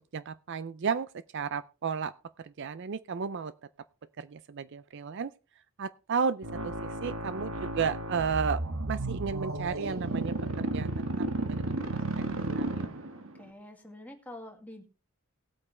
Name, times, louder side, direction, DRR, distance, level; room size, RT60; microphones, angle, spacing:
voice 1, 0.0-3.5 4.2-5.3 5.8-8.6 8.9-10.9 11.5-12.9, right 6 dB, 55° right, 0.5 m, -33 dB
sound 1, 6.4-13.4, right 2 dB, 75° right, 1.4 m, -33 dB
voice 2, 13.2-14.8, left 1 dB, 10° left, 2.0 m, -47 dB
18.0 x 8.4 x 3.3 m
head